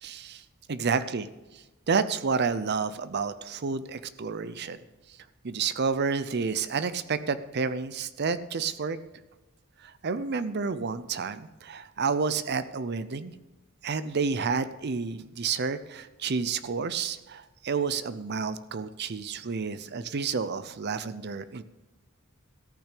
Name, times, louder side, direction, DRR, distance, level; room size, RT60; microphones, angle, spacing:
voice 1, 0.0-0.4 0.7-1.3 1.5-4.8 5.4-9.0 9.8-13.3 13.8-21.6, right 5 dB, 50° right, 14 dB, 0.6 m, -30 dB
14.0 x 6.0 x 8.3 m, 1.1 s
head